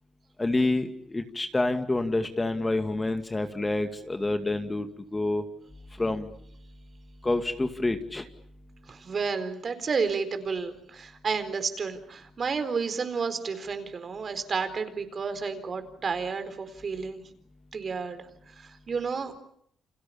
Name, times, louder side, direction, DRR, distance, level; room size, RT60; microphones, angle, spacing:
voice 1, 0.4-4.9 5.1-5.4 6.0-6.3 7.2-8.2, left 2 dB, 20° left, 7 dB, 2.3 m, -27 dB
voice 2, 8.9-17.2 17.7-18.2 18.6-19.3, right 5 dB, 45° right, 9 dB, 4.3 m, -31 dB
29.5 x 26.5 x 7.1 m, 0.67 s
cardioid pair, 90°, 0 cm